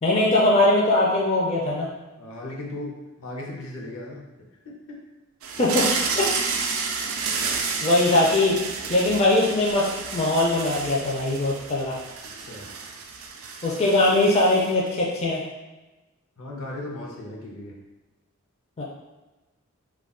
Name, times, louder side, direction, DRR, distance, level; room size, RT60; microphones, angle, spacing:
voice 1, 0.0-1.9 5.6-6.3 7.8-8.6 8.9-12.0 13.6-15.4 18.8-18.9, left 2 dB, 30° left, -4 dB, 0.4 m, -21 dB
voice 2, 2.2-2.9 3.2-4.2 4.9-5.0 12.4-12.7 16.4-17.8, left 1 dB, 75° left, -1 dB, 0.6 m, -36 dB
sound 1, 5.4-14.9, right 5 dB, 70° right, 0.3 m, -31 dB
2.3 x 2.2 x 3.6 m, 1.1 s
head